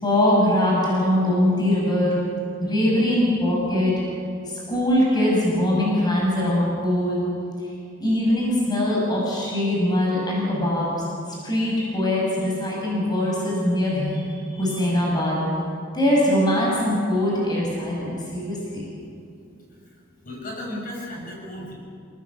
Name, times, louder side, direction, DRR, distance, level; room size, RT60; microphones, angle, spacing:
voice 1, 0.0-2.2 2.6-4.0 4.5-7.3 7.6-7.7 8.0-15.4 15.9-18.8, left 1 dB, 20° left, -4 dB, 5.9 m, -22 dB
voice 2, 20.2-21.7, left 1 dB, 45° left, -2 dB, 6.6 m, -35 dB
28.0 x 18.0 x 7.4 m, 2.5 s
head